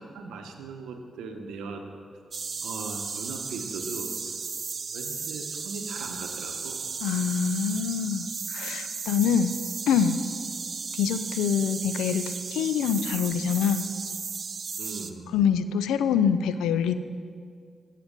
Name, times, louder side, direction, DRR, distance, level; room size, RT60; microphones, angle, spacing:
voice 1, 0.0-1.9 2.6-4.1 4.9-6.8 14.8-15.3, right 4 dB, 85° right, 5 dB, 0.8 m, -39 dB
sound 1, 2.3-15.1, right 5 dB, 55° right, 0.5 m, -35 dB
voice 2, 7.0-9.5 9.9-10.2 10.9-13.8 15.3-16.9, left 7 dB, 90° left, 12 dB, 0.3 m, -25 dB
8.6 x 7.4 x 5.2 m, 2.1 s
supercardioid pair, 45°, 0 cm